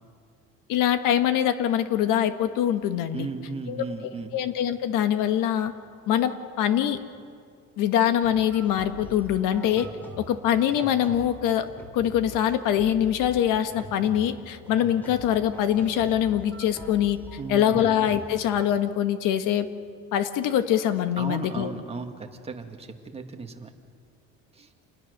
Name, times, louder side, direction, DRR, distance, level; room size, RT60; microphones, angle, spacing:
voice 1, 0.7-3.3 3.7-3.8 4.3-5.7 6.1-7.0 7.8-9.9 10.2-11.7 11.9-17.2 17.5-19.7 20.1-21.7, left 10 dB, 80° left, 9 dB, 1.5 m, -23 dB
voice 2, 3.1-4.4 17.4-17.9 21.2-23.7 24.5-24.7, right 4 dB, 20° right, 3 dB, 2.0 m, -36 dB
sound 1, 8.2-18.7, equal, 5° left, 4.6 m, -44 dB
28.0 x 20.5 x 6.6 m, 2.2 s
cardioid pair, 130°, 31 cm